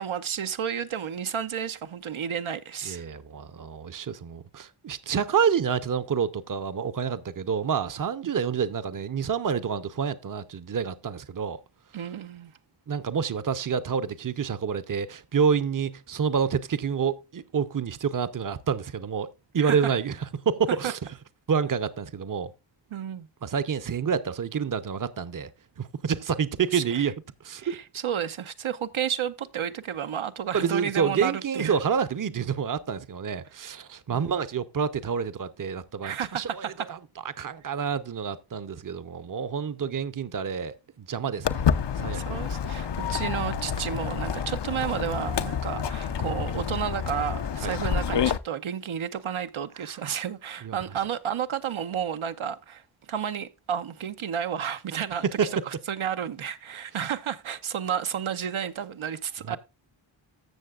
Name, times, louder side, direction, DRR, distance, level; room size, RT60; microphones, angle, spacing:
voice 1, 0.0-3.1 11.9-12.5 19.6-19.9 20.8-20.9 22.9-23.3 26.7-27.0 27.6-31.8 34.1-34.3 36.0-36.9 42.1-52.8 53.1-55.2 55.6-59.6, right 8 dB, 80° right, 0.8 m, -31 dB
voice 2, 2.9-11.6 12.9-19.3 19.5-21.0 21.5-22.5 23.4-25.5 25.8-27.1 27.4-27.8 30.5-37.0 37.4-41.6 42.0-42.4 47.6-47.8 49.8-50.2 50.6-50.8 55.4-55.5 59.5-59.6, right 6 dB, 40° right, 0.7 m, -28 dB
Walk footsteps, 41.4-48.4, left 7 dB, 60° left, 0.7 m, -28 dB
14.5 x 6.6 x 2.4 m
wide cardioid pair, 80°, 48 cm